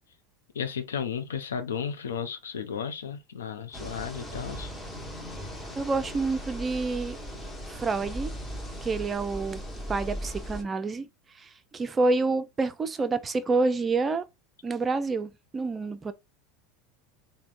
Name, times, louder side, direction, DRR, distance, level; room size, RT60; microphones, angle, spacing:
voice 1, 0.5-4.7, left 7 dB, 85° left, 0.5 m, -34 dB
sound 1, 3.7-10.6, equal, 15° left, 1.1 m, -38 dB
voice 2, 5.8-7.2 7.7-8.3 8.8-9.6 9.9-11.1 11.4-14.3 14.6-16.1, right 3 dB, 25° right, 0.4 m, -28 dB
3.5 x 2.2 x 2.6 m
hypercardioid pair, 90°, 0 cm